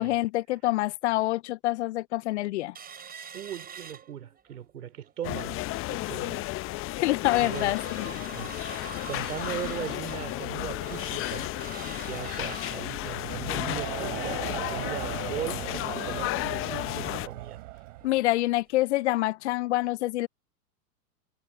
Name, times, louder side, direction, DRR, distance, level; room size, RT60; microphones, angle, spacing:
voice 1, 0.0-2.8 6.8-8.1 18.0-20.3, left 17 dB, 45° left, 0.6 m, -26 dB
sound 1, 2.7-4.6 5.0-5.1 5.5-5.8 6.3-6.4 6.7-17.3 17.6-17.7 18.0-18.2 18.7-18.8, right 7 dB, 20° right, 4.6 m, -46 dB
voice 2, 3.3-6.5 7.4-11.5 12.0-17.6, right 9 dB, 70° right, 4.0 m, -39 dB
sound 2, 5.2-17.3, left 18 dB, 25° left, 0.9 m, -33 dB
Crowd, 13.1-18.3, right 18 dB, 55° right, 5.0 m, -38 dB
figure-of-eight pair, 105°, 47 cm